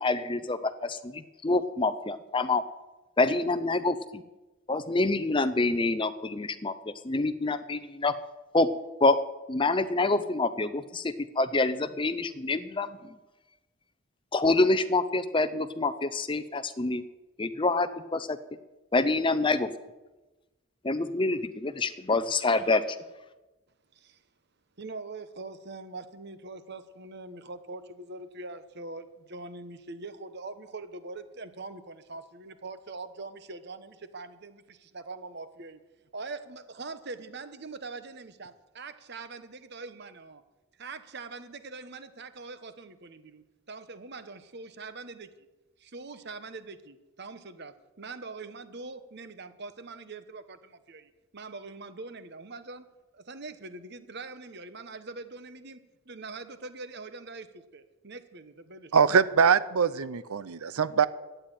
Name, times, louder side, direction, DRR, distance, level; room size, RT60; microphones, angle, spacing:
voice 1, 0.0-2.6 3.2-4.2 4.7-8.1 8.5-8.7 9.0-9.2 9.5-13.1 14.3-17.0 17.4-18.4 18.9-19.7 20.8-22.8, left 2 dB, 20° left, 13 dB, 0.6 m, -26 dB
voice 2, 24.8-35.8 36.1-40.4 40.8-45.3 45.8-52.9 53.1-58.9, right 3 dB, 50° right, 11 dB, 1.0 m, -43 dB
voice 3, 58.9-61.1, right 6 dB, 80° right, 16 dB, 0.6 m, -23 dB
13.0 x 9.1 x 9.2 m, 1.1 s
head